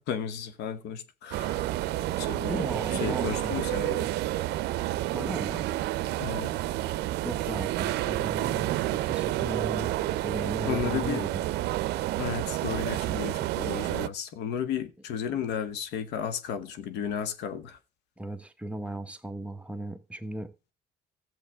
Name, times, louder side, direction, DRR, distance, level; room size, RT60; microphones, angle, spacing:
voice 1, 0.1-1.6 2.2-2.6 3.0-4.1 6.2-6.5 10.7-11.2 12.2-17.8, left 8 dB, 80° left, 1.1 m, -33 dB
sound 1, 1.3-14.1, right 15 dB, 80° right, 0.6 m, -29 dB
voice 2, 2.4-3.9 5.1-5.7 7.2-9.9 10.2-11.4 15.3-15.4 18.2-20.5, right 1 dB, 5° right, 1.0 m, -37 dB
14.0 x 7.6 x 3.5 m
cardioid pair, 110°, 17 cm